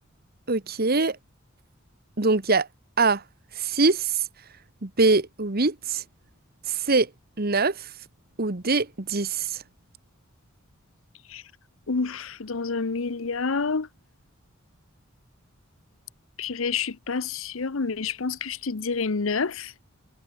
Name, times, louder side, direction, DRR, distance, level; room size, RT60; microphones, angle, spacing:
voice 1, 0.5-1.2 2.2-2.7 3.0-3.2 3.6-4.2 4.8-6.0 6.7-7.1 7.4-7.9 8.4-9.6, right 3 dB, 50° right, 1.6 m, -23 dB
voice 2, 11.9-13.9 16.4-19.7, left 4 dB, 75° left, 0.9 m, -28 dB
head